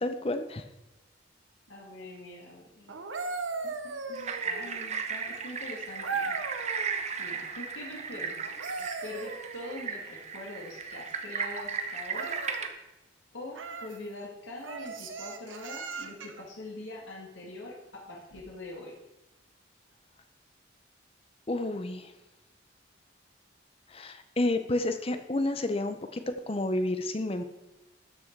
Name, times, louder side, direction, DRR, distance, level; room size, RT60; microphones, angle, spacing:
voice 1, 0.0-0.6 21.5-22.1 23.9-27.4, left 2 dB, 30° left, 8 dB, 0.7 m, -30 dB
voice 2, 1.7-3.0 3.6-6.4 7.2-8.5 9.0-12.4 13.3-19.0, left 2 dB, 85° left, -2 dB, 2.1 m, -43 dB
sound 1, 2.9-4.9 6.0-7.0 8.4-10.0 12.1-12.7 13.5-14.0 14.6-16.4 18.3-18.5, right 4 dB, 85° right, 1.0 m, -37 dB
sound 2, 4.1-12.7, right 5 dB, 35° right, 0.8 m, -36 dB
12.5 x 6.2 x 4.6 m, 1.0 s
head